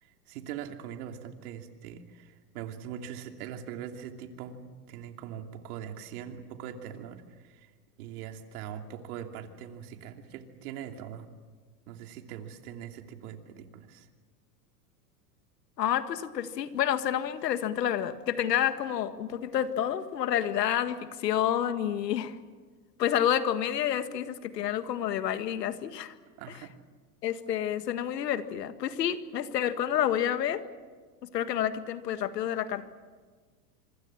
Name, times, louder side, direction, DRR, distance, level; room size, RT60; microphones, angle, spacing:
voice 1, 0.0-7.7 8.0-11.3 11.9-14.1 26.4-26.7, right 9 dB, 65° right, 5 dB, 2.9 m, -42 dB
voice 2, 15.8-22.4 23.0-26.1 27.2-30.6 31.2-32.9, left 10 dB, 80° left, 10 dB, 1.9 m, -29 dB
26.5 x 24.5 x 7.3 m, 1.5 s
hypercardioid pair, 105°, 48 cm